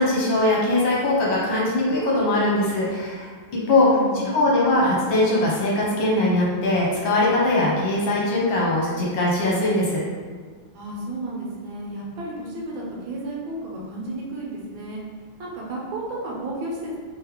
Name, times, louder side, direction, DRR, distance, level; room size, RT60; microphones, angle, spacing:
voice 1, 0.0-3.3 3.7-3.9 4.1-10.0, left 2 dB, 70° left, -5 dB, 1.5 m, -21 dB
voice 2, 3.5-4.3 10.7-15.0 15.4-17.0, right 1 dB, 70° right, -3 dB, 1.5 m, -33 dB
3.6 x 3.3 x 3.1 m, 1.6 s
omnidirectional pair, 2.3 m